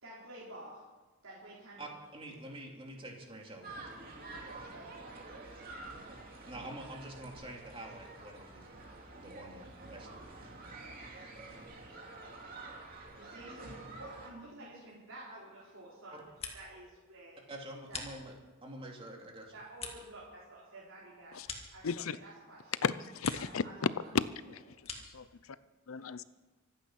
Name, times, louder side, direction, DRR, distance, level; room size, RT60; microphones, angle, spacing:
voice 1, 0.0-0.9 1.2-1.9 4.3-5.3 13.2-16.3 16.5-17.4 17.9-18.0 19.5-21.4 21.7-23.0 23.3-24.1 24.7-24.8, right 2 dB, 70° right, -7 dB, 3.9 m, -51 dB
voice 2, 1.8-4.1 6.5-8.8 9.2-10.8 16.1-16.2 17.5-18.3 18.6-19.6, right 1 dB, 25° right, 0 dB, 2.7 m, -47 dB
sound 1, 3.6-14.3, right 2 dB, 45° right, 2.8 m, -48 dB
sound 2, 16.1-16.9 17.2-18.7 19.1-22.4 22.7-23.6 23.9-25.3, left 4 dB, 30° left, 2.0 m, -47 dB
voice 3, 21.8-22.2 22.8-23.6 24.1-24.2 24.5-24.6 25.1-25.2 25.9-26.2, left 5 dB, 80° left, 16 dB, 0.6 m, -33 dB
25.0 x 8.9 x 5.9 m, 1.2 s
head